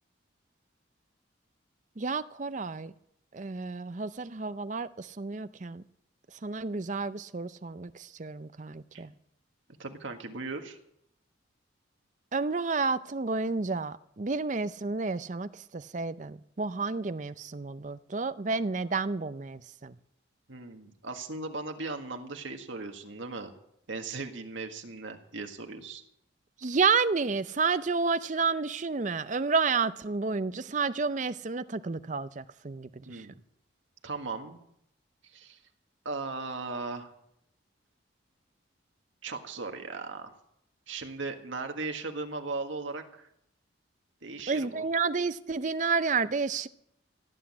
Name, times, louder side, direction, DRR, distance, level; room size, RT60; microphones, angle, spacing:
voice 1, 2.0-2.9 3.3-5.8 6.4-9.1 12.3-20.0 26.6-33.3 44.5-46.7, right 4 dB, 40° right, 0.5 m, -30 dB
voice 2, 9.8-10.8 20.5-23.5 23.9-26.0 33.0-33.3 34.0-34.6 35.2-35.6 36.0-37.1 39.2-40.3 40.9-43.3 44.2-44.8, right 3 dB, 80° right, 1.6 m, -37 dB
16.5 x 8.2 x 8.6 m
head